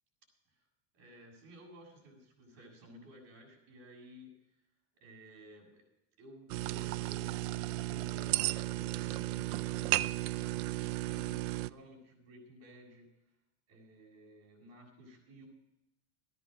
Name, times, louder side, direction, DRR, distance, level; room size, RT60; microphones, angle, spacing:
voice 1, 0.9-4.4 5.0-5.8 6.2-13.1 13.7-15.5, equal, 35° right, -1 dB, 7.3 m, -55 dB
sound 1, 6.5-11.7, right 18 dB, 65° right, 0.6 m, -34 dB
15.0 x 11.0 x 6.6 m, 0.85 s
supercardioid pair, 160°, 43 cm